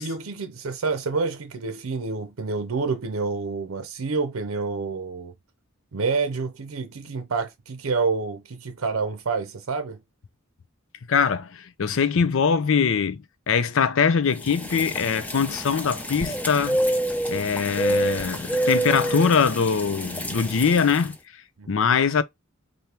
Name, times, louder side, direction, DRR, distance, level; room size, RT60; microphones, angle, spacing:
voice 1, 0.0-5.3 5.9-10.0 21.6-21.8, right 4 dB, 80° right, 0.6 m, -28 dB
voice 2, 11.1-16.8 17.3-21.4 21.7-22.2, left 6 dB, 70° left, 0.5 m, -22 dB
sound 1, 14.4-21.0, right 1 dB, 10° left, 0.7 m, -27 dB
4.4 x 2.7 x 3.3 m
head